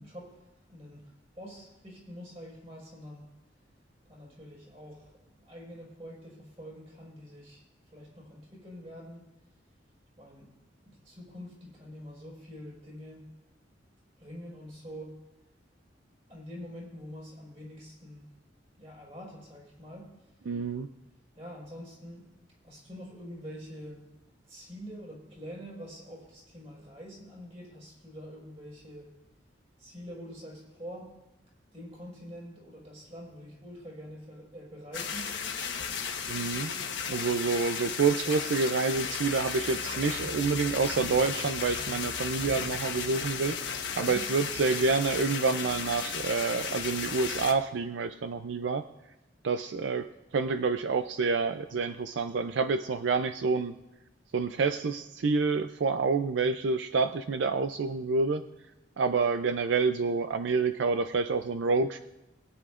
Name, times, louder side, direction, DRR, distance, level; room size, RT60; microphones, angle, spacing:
voice 1, 0.0-3.3 4.1-9.2 10.2-10.5 10.8-13.2 14.2-15.2 16.3-18.3 18.8-20.2 21.4-22.3 22.6-24.0 24.5-29.1 29.8-31.1 31.7-35.4 43.9-44.2, equal, 35° right, -4 dB, 4.8 m, -46 dB
voice 2, 20.5-20.9 36.3-36.7 37.1-48.9 49.4-53.7 54.3-58.4 59.0-62.0, right 4 dB, 75° right, 9 dB, 0.4 m, -28 dB
sound 1, 34.9-47.5, left 6 dB, 75° left, 1.2 m, -34 dB
21.5 x 9.7 x 2.5 m, 0.96 s
head